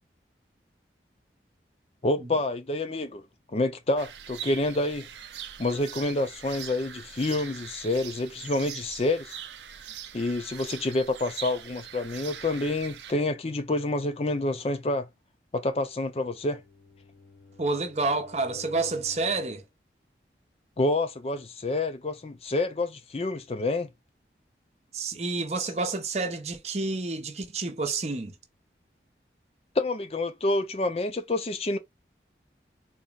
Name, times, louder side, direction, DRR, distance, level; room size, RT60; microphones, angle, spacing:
voice 1, 2.0-3.2 3.5-5.1 5.6-9.4 10.1-15.1 15.5-16.6 20.8-23.9 29.8-31.8, left 2 dB, 35° left, 0.4 m, -28 dB
sound 1, 4.0-13.1, right 9 dB, 85° right, 0.5 m, -42 dB
Bowed string instrument, 16.0-19.7, left 3 dB, 85° left, 1.3 m, -52 dB
voice 2, 17.6-19.6 24.9-28.3, right 3 dB, 35° right, 0.7 m, -29 dB
4.0 x 3.0 x 2.3 m
head